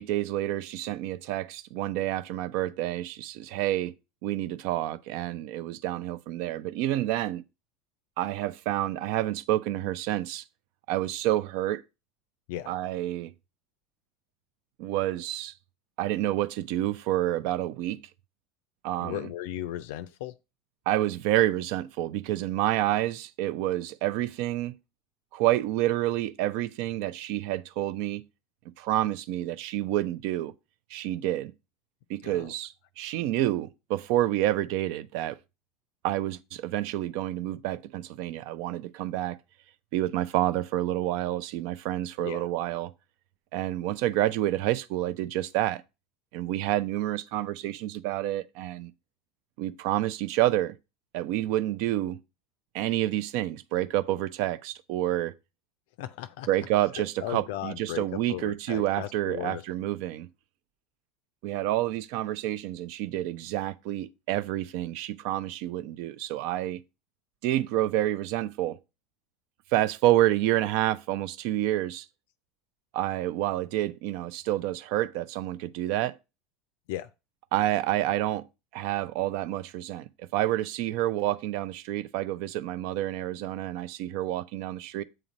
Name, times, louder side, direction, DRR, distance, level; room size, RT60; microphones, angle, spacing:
voice 1, 0.0-3.9 4.2-7.4 8.2-10.4 10.9-11.8 12.7-13.3 14.8-15.5 16.0-18.0 18.8-19.3 20.9-24.8 25.3-28.2 28.8-30.5 30.9-31.5 32.1-35.4 36.0-39.4 39.9-42.9 43.5-45.8 46.3-48.9 49.6-50.8 51.1-52.2 52.7-55.3 56.5-60.3 61.4-66.8 67.4-68.8 69.7-72.1 72.9-76.2 77.5-78.5 78.7-85.0, right 14 dB, 55° right, 0.5 m, -28 dB
voice 2, 19.0-20.3 32.2-32.5 42.2-42.5 56.0-56.5 57.0-59.6 76.9-77.1, left 13 dB, 60° left, 0.4 m, -36 dB
7.7 x 3.9 x 6.0 m
figure-of-eight pair, 75°, 0 cm